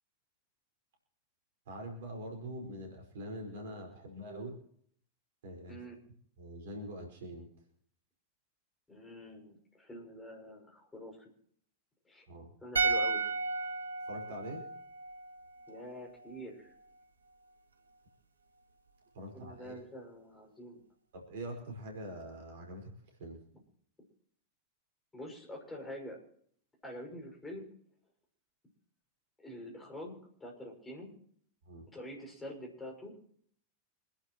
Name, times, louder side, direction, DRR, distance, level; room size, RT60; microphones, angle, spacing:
voice 1, 1.7-4.6 5.4-5.8 6.4-7.5 12.3-12.5 14.1-14.7 19.1-19.7 21.1-22.9 23.2-23.4 31.7-31.9, right 1 dB, 55° right, 2 dB, 4.9 m, -44 dB
voice 2, 8.9-11.3 12.1-12.2 12.6-13.2 15.7-16.7 19.3-20.8 25.1-26.2 26.8-27.7 29.4-31.1 31.9-33.1, equal, 10° left, -1 dB, 6.1 m, -46 dB
sound 1, 12.8-16.0 16.2-16.4, right 4 dB, 75° right, 1.0 m, -34 dB
27.0 x 12.0 x 3.1 m, 0.62 s
figure-of-eight pair, 90°, 0 cm